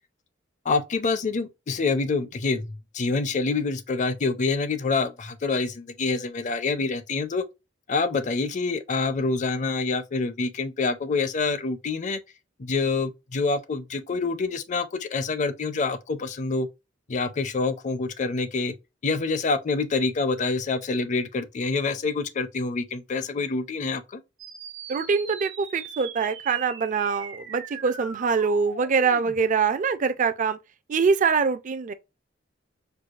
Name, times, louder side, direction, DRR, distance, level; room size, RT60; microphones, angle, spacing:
voice 1, 0.7-7.4 7.9-12.2 12.6-16.7 17.1-18.7 19.0-24.2, left 4 dB, 40° left, 0.5 m, -26 dB
sound 1, 24.4-29.4, right 6 dB, 70° right, 0.9 m, -41 dB
voice 2, 24.9-30.6 30.9-31.9, right 5 dB, 40° right, 0.4 m, -24 dB
4.7 x 2.3 x 2.4 m
head